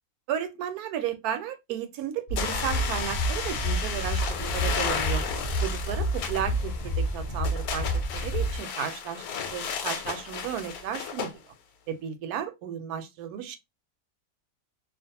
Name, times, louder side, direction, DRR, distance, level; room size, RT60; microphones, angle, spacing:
voice 1, 0.3-5.2 5.6-7.9 8.1-9.2 9.5-11.3 11.9-13.6, right 9 dB, 80° right, 1.1 m, -33 dB
sound 1, 2.3-8.6, equal, 45° left, 0.5 m, -29 dB
sound 2, 2.4-11.3, left 7 dB, 90° left, 1.1 m, -34 dB
2.5 x 2.2 x 2.7 m
omnidirectional pair, 1.6 m